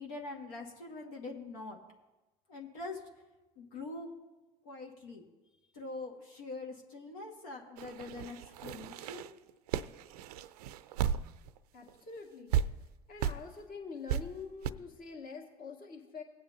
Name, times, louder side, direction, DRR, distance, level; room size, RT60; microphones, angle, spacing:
voice 1, 0.0-1.8 2.5-3.0 3.6-4.1 4.6-5.2 5.7-9.3, left 3 dB, 75° left, -1 dB, 1.6 m, -44 dB
sound 1, 7.8-11.6 11.9-12.0 12.5-12.7 13.2-13.4 14.1-14.2 14.6-14.7, right 9 dB, 70° right, 0.5 m, -34 dB
voice 2, 11.7-12.6 13.1-16.2, left 5 dB, 45° left, 2 dB, 1.9 m, -45 dB
18.5 x 8.7 x 2.7 m, 1.1 s
figure-of-eight pair, 70°, 20 cm